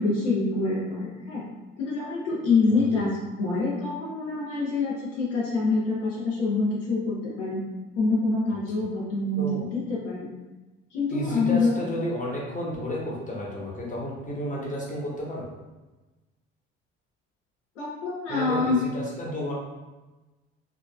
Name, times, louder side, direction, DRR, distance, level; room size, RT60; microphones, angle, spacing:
voice 1, 0.0-1.5 1.8-7.7 8.0-10.3 10.9-11.7 17.8-18.8, left 3 dB, 75° left, -6 dB, 0.6 m, -26 dB
voice 2, 11.1-15.5 18.3-19.5, equal, 20° left, -4 dB, 0.9 m, -32 dB
3.1 x 2.6 x 2.3 m, 1.1 s
figure-of-eight pair, 50°, 37 cm